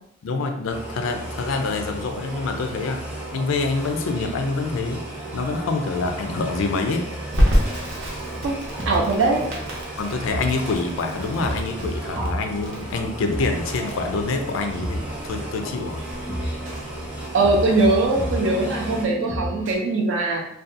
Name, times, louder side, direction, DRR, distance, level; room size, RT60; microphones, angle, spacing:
voice 1, 0.2-3.0 3.3-5.0 5.3-7.1 10.0-16.0, left 3 dB, 80° left, 5 dB, 0.4 m, -26 dB
sound 1, 0.7-19.0, right 1 dB, 10° right, 0.6 m, -34 dB
Crackle, 7.3-18.1, equal, 80° right, 0.8 m, -28 dB
sound 2, 7.5-19.7, equal, 40° right, 0.7 m, -33 dB
voice 2, 8.4-9.5 17.3-20.5, right 2 dB, 60° right, 0 dB, 0.4 m, -21 dB
2.6 x 2.2 x 2.4 m, 0.75 s
head